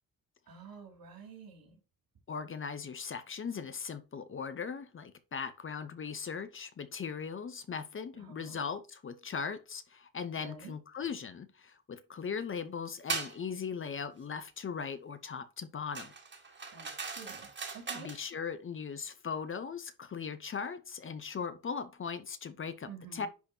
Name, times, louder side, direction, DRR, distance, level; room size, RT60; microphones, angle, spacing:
voice 1, 0.5-1.8 8.1-8.6 10.4-10.7 16.7-18.1 22.9-23.3, right 5 dB, 80° right, 3.2 m, -50 dB
voice 2, 2.3-16.1 17.9-23.3, left 6 dB, 35° left, 0.7 m, -39 dB
sound 1, 13.1-13.4 15.9-18.2, right 4 dB, 30° right, 1.6 m, -39 dB
10.5 x 4.3 x 2.8 m
wide cardioid pair, 175°, 35 cm